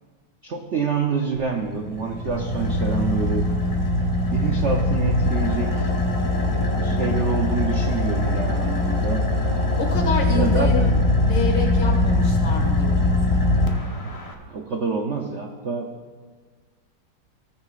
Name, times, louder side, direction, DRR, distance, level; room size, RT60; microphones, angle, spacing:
voice 1, 0.4-3.5 4.3-5.9 6.8-9.2 10.3-11.0 14.5-15.9, right 5 dB, 60° right, 2 dB, 0.7 m, -27 dB
Car / Idling, 1.4-14.3, left 2 dB, 30° left, 0.7 m, -22 dB
voice 2, 9.8-10.9 11.2-13.4, left 3 dB, 70° left, 0 dB, 2.5 m, -28 dB
17.0 x 9.6 x 2.4 m, 1.5 s
omnidirectional pair, 2.0 m